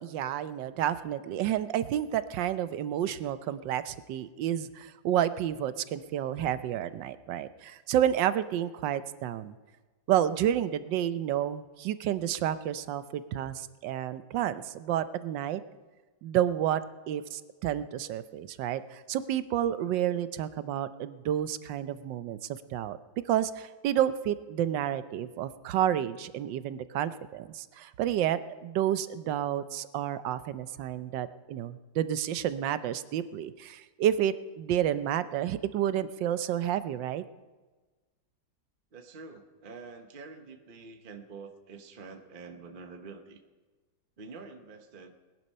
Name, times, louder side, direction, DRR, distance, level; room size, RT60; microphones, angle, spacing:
voice 1, 0.0-9.5 10.1-15.6 16.2-16.8 17.1-23.0 23.3-37.2, right 11 dB, 75° right, 13 dB, 1.3 m, -30 dB
voice 2, 38.9-43.4 44.2-45.1, right 4 dB, 35° right, 6 dB, 0.9 m, -47 dB
20.0 x 11.0 x 5.5 m, 1.3 s
omnidirectional pair, 2.0 m